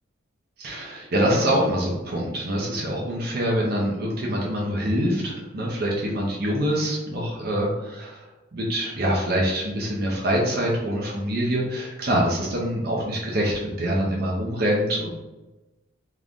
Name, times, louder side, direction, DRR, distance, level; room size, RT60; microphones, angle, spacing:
voice 1, 0.6-8.3 8.5-15.1, equal, 50° right, -3 dB, 0.7 m, -25 dB
3.1 x 2.5 x 3.5 m, 1.1 s
head